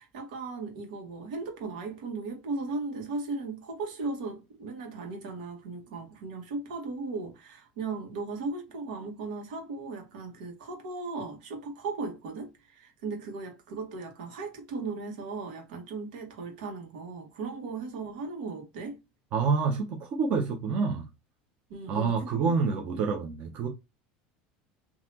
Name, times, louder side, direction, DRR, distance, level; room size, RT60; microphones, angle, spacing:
voice 1, 0.0-19.0 21.7-22.5, right 3 dB, 80° right, 1.6 m, -37 dB
voice 2, 19.3-21.1 21.9-23.7, right 5 dB, 35° right, 0.7 m, -27 dB
4.0 x 2.8 x 2.9 m
cardioid pair, 175°, 4 cm